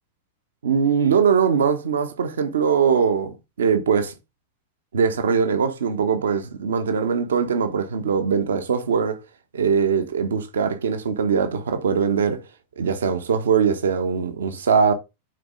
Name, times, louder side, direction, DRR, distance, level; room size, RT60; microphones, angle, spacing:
voice 1, 0.6-4.1 4.9-9.2 9.5-12.4 12.8-14.9, right 6 dB, 65° right, 1.1 m, -21 dB
6.6 x 4.4 x 5.1 m
figure-of-eight pair, 90°, 0 cm